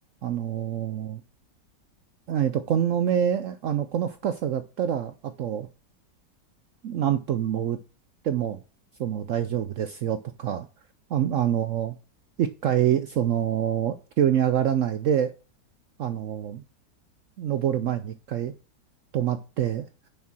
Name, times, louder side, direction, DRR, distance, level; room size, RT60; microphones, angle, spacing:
voice 1, 0.2-1.2 2.3-5.7 6.8-7.8 8.2-8.6 9.0-10.7 11.1-11.9 12.4-15.3 16.0-16.6 17.4-18.5 19.1-19.9, right 10 dB, 70° right, 0.7 m, -26 dB
6.8 x 6.6 x 6.0 m
omnidirectional pair, 1.9 m